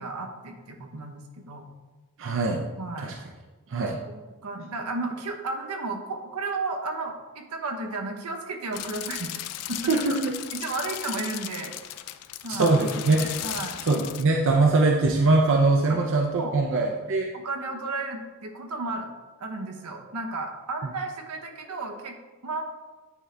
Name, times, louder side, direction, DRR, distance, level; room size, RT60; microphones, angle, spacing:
voice 1, 0.0-1.7 2.8-3.1 4.1-9.3 9.7-10.0 10.5-11.7 12.4-12.7 13.4-13.8 15.9-16.0 16.3-16.7 17.3-19.1 19.4-22.1 22.4-22.6, right 3 dB, 80° right, 3 dB, 0.9 m, -33 dB
voice 2, 2.2-2.6 3.0-3.1 3.7-4.0 9.9-10.3 12.5-13.4 13.8-17.3, right 3 dB, 60° right, 1 dB, 0.6 m, -22 dB
sound 1, 8.7-14.2, left 12 dB, 85° left, 0.4 m, -36 dB
9.6 x 3.8 x 3.3 m, 1.2 s
head